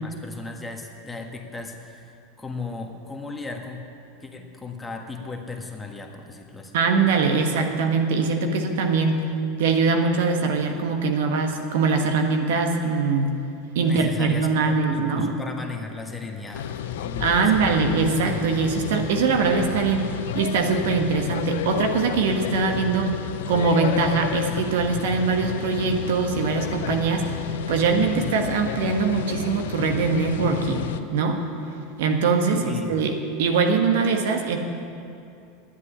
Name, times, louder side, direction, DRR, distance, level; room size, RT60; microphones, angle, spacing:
voice 1, 0.0-3.9 4.2-6.8 13.8-18.0 32.5-33.1, left 3 dB, 10° left, 2 dB, 1.5 m, -36 dB
voice 2, 6.7-9.2 9.6-13.3 13.7-15.3 17.2-23.1 23.5-27.2 27.7-31.4 32.0-33.1 33.4-34.6, right 4 dB, 70° right, 4 dB, 1.4 m, -22 dB
sound 1, 16.5-31.0, left 9 dB, 75° left, 0.6 m, -31 dB
10.0 x 8.2 x 9.9 m, 2.6 s
hypercardioid pair, 105°, 0 cm